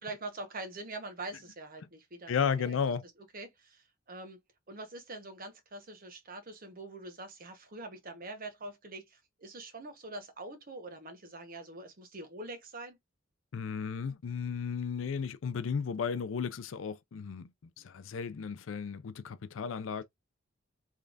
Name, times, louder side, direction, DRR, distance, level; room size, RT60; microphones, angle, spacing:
voice 1, 0.0-4.4 4.7-13.0, right 2 dB, 50° right, 1.1 m, -44 dB
voice 2, 2.3-3.0 13.5-17.5 17.8-20.0, left 6 dB, 85° left, 0.4 m, -34 dB
3.6 x 3.2 x 2.5 m
head